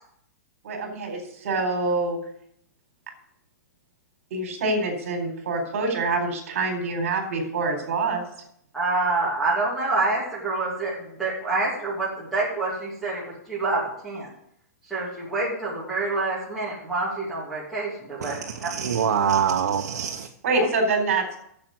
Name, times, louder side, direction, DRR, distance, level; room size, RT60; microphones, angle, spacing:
voice 1, 0.6-2.2 4.3-8.2 20.4-21.4, right 3 dB, 50° right, 3.9 m, -25 dB
voice 2, 8.7-14.3 14.9-18.4 18.6-18.7 20.6-20.7, right 3 dB, ahead, 2.7 m, -27 dB
voice 3, 18.2-20.3, right 7 dB, 80° right, 1.0 m, -25 dB
8.8 x 7.5 x 7.8 m
hypercardioid pair, 175°, 9 cm